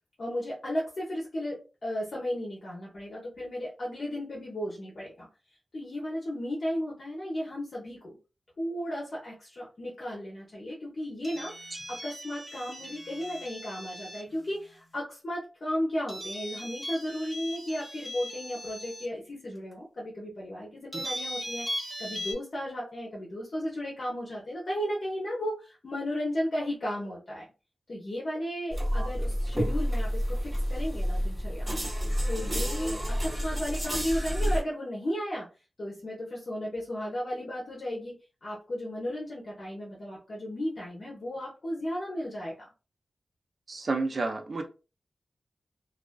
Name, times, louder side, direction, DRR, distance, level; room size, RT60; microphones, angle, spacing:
voice 1, 0.2-5.3 5.7-8.2 8.6-11.6 11.9-27.5 27.9-31.8 32.3-35.5 35.8-42.7, equal, 60° left, -5 dB, 0.8 m, -34 dB
sound 1, 11.2-14.3 16.1-19.1 19.7-19.8 20.9-22.3, equal, 10° left, 1.3 m, -39 dB
sound 2, 28.7-34.6, equal, 20° right, 1.4 m, -29 dB
voice 2, 43.7-44.6, right 3 dB, 50° right, 4 dB, 0.5 m, -30 dB
2.3 x 2.3 x 2.2 m, 0.31 s
wide cardioid pair, 120°, 0 cm